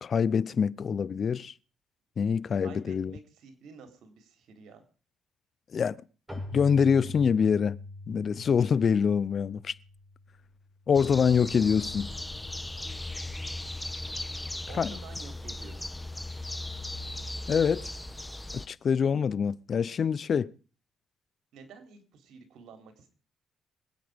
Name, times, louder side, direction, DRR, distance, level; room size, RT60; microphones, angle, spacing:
voice 1, 0.0-1.5 2.2-3.1 5.7-6.0 6.5-7.8 8.1-9.7 10.9-12.1 14.8-15.0 17.5-17.9 18.5-20.5, left 6 dB, 50° left, 0.6 m, -25 dB
voice 2, 2.6-4.8 14.7-15.8 21.5-23.1, right 5 dB, 75° right, 3.8 m, -50 dB
Keyboard (musical), 6.3-10.8, left 2 dB, 15° right, 6.5 m, -43 dB
sound 1, 10.9-18.7, left 2 dB, 10° left, 1.2 m, -37 dB
24.5 x 9.2 x 5.2 m
cardioid pair, 90°, 0 cm